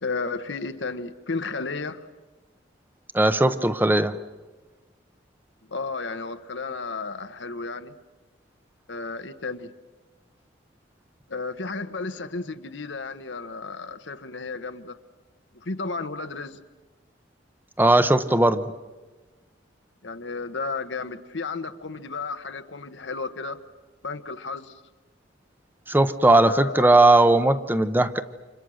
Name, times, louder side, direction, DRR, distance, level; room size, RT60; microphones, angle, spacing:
voice 1, 0.0-2.1 5.7-8.0 8.9-9.7 11.3-15.0 15.5-16.6 20.0-23.6 24.0-24.8 26.5-27.0, left 4 dB, 70° left, 9 dB, 1.2 m, -33 dB
voice 2, 3.1-4.2 17.8-18.6 25.9-28.2, right 2 dB, 10° right, 11 dB, 0.8 m, -18 dB
30.0 x 26.5 x 6.4 m, 1.2 s
head